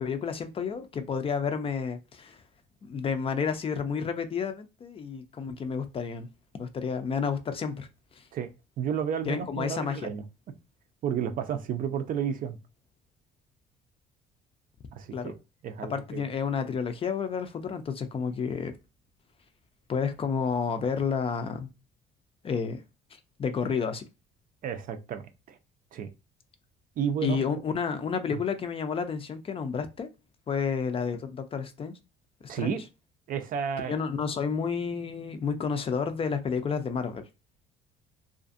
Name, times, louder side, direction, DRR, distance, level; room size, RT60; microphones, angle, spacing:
voice 1, 0.0-2.4 2.8-6.3 6.6-7.9 8.2-8.3 9.3-10.1 15.1-15.3 15.8-18.7 19.9-21.7 22.4-22.8 23.4-24.1 27.2-30.1 30.5-31.9 32.6-32.7 33.8-37.2, left 6 dB, 35° left, 0.4 m, -30 dB
voice 2, 8.8-10.2 11.0-12.6 15.0-15.3 15.6-16.2 24.6-25.2 25.5-25.6 25.9-26.1 27.0-27.4 28.3-28.4 32.5-32.8 33.3-34.0, right 8 dB, 55° right, 0.5 m, -31 dB
2.5 x 2.4 x 2.5 m
cardioid pair, 110°, 17 cm